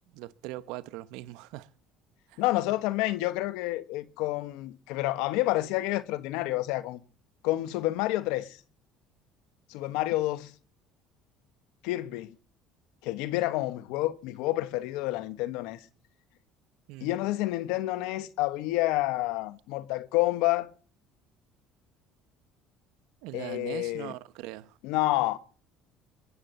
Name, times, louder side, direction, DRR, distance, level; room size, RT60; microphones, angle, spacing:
voice 1, 0.1-1.7 2.3-2.4 16.9-17.2 23.2-24.8, right 16 dB, 80° right, 0.9 m, -41 dB
voice 2, 2.4-7.0 7.4-8.6 9.7-10.5 11.8-12.3 13.0-15.8 17.0-20.7 23.3-24.1 24.8-25.4, left 17 dB, 80° left, 1.2 m, -29 dB
22.5 x 8.1 x 6.7 m
supercardioid pair, 105°, 0 cm